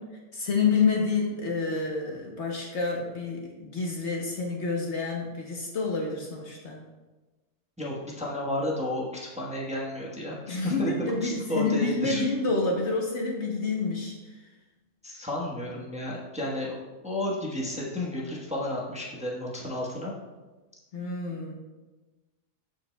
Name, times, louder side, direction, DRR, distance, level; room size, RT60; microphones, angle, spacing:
voice 1, 0.3-6.8 10.5-14.4 20.9-21.5, left 4 dB, 55° left, -1 dB, 1.1 m, -28 dB
voice 2, 7.8-10.9 11.2-12.2 15.0-16.7 17.0-20.1, left 1 dB, 5° right, -4 dB, 1.0 m, -32 dB
13.0 x 4.6 x 2.2 m, 1.2 s
omnidirectional pair, 1.5 m